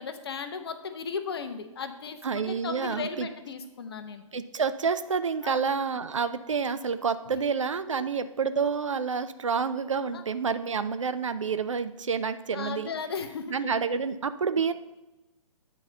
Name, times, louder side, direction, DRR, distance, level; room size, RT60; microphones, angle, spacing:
voice 1, 0.0-4.2 5.4-5.6 7.9-8.1 10.1-10.2 12.5-13.6, left 5 dB, 45° left, 8 dB, 0.7 m, -36 dB
voice 2, 2.2-3.3 4.3-12.9 13.5-14.7, right 5 dB, 60° right, 12 dB, 0.5 m, -28 dB
8.9 x 4.1 x 5.7 m, 0.98 s
figure-of-eight pair, 130°, 18 cm